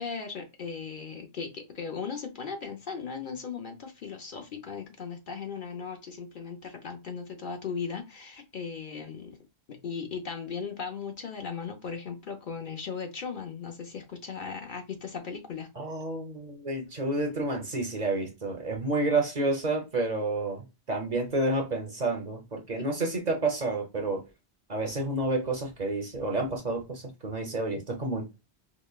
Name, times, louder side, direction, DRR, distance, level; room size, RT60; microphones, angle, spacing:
voice 1, 0.0-9.3 9.7-15.7 22.8-22.9, left 5 dB, 55° left, 0.8 m, -37 dB
voice 2, 15.8-24.2 24.7-28.3, right 2 dB, 45° right, 0.8 m, -30 dB
5.1 x 2.1 x 2.3 m
omnidirectional pair, 1.1 m